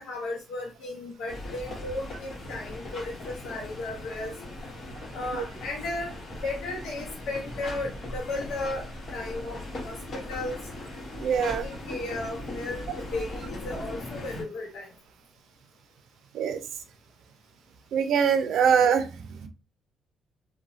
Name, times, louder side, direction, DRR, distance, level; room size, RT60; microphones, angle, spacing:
voice 1, 0.0-4.3 5.1-8.8 9.1-9.6 9.8-10.6 11.4-12.8 13.1-14.9, left 2 dB, 75° left, -3 dB, 0.7 m, -35 dB
sound 1, 1.3-14.4, left 1 dB, 55° left, 1.2 m, -39 dB
voice 2, 11.2-11.6 16.3-16.6 17.9-19.1 19.4-19.5, right 7 dB, 75° right, 9 dB, 0.4 m, -23 dB
2.9 x 2.2 x 2.6 m, 0.29 s
cardioid pair, 90°, 0 cm